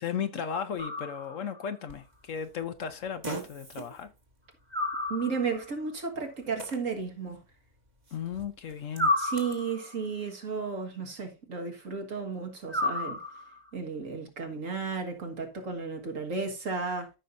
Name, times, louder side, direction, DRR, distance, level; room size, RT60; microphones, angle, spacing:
voice 1, 0.0-4.1 8.1-9.1, left 7 dB, 60° left, 1.0 m, -35 dB
sound 1, 0.8-1.6 4.7-5.7 9.0-10.0 12.7-13.7, left 2 dB, 10° right, 1.4 m, -31 dB
Fart, 1.9-9.6, right 3 dB, 25° right, 1.8 m, -46 dB
voice 2, 5.1-7.4 9.2-13.2 13.7-17.1, right 5 dB, 55° right, 2.0 m, -33 dB
14.0 x 5.7 x 2.6 m
omnidirectional pair, 1.6 m